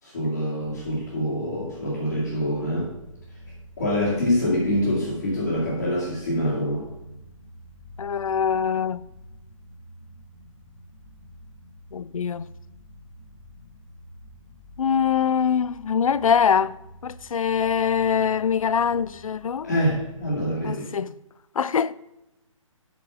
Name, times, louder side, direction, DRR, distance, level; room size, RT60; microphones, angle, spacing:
voice 1, 0.0-2.9 3.8-6.9 19.6-20.9, equal, 30° left, 2.1 m, -25 dB
sound 1, 0.6-20.5, equal, 5° left, 0.9 m, -48 dB
voice 2, 8.0-9.0 11.9-12.5 14.8-16.8 17.0-19.7 20.6-21.1 21.6-21.9, left 7 dB, 75° left, 0.4 m, -23 dB
8.3 x 6.0 x 4.8 m
hypercardioid pair, 180°, 17 cm